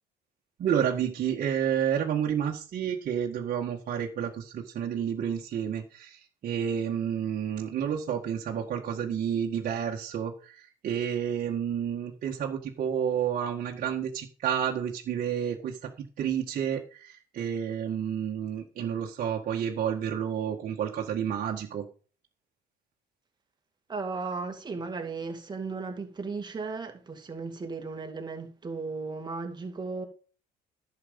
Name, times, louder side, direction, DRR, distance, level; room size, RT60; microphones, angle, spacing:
voice 1, 0.6-15.9 16.2-21.9, right 8 dB, 55° right, 1.8 m, -30 dB
voice 2, 23.9-30.1, right 4 dB, 25° right, 2.5 m, -35 dB
11.0 x 7.3 x 5.3 m
cardioid pair, 110°, 17 cm